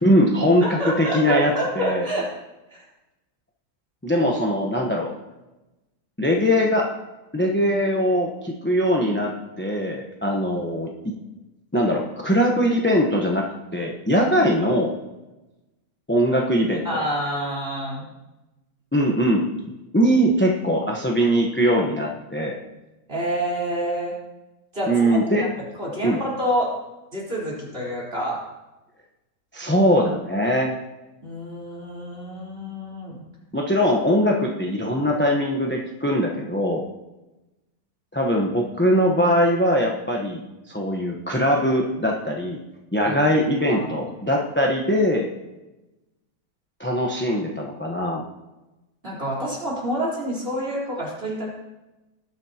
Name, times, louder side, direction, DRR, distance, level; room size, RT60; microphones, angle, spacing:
voice 1, 0.0-2.1 4.0-5.1 6.2-6.9 7.3-11.1 11.7-13.4 13.7-14.9 16.1-17.0 18.9-19.5 19.9-22.6 24.9-25.5 26.0-26.2 29.5-30.7 33.5-36.8 38.1-42.6 42.9-45.3 46.8-48.2, equal, 10° left, 0 dB, 0.9 m, -21 dB
voice 2, 0.6-2.3 16.8-18.1 23.1-24.1 24.7-25.2 25.8-26.7 27.1-28.4 31.2-33.2 43.0-43.2 43.7-43.9 49.0-51.5, equal, 35° right, -6 dB, 4.4 m, -27 dB
19.5 x 9.7 x 2.9 m, 1.0 s
omnidirectional pair, 1.6 m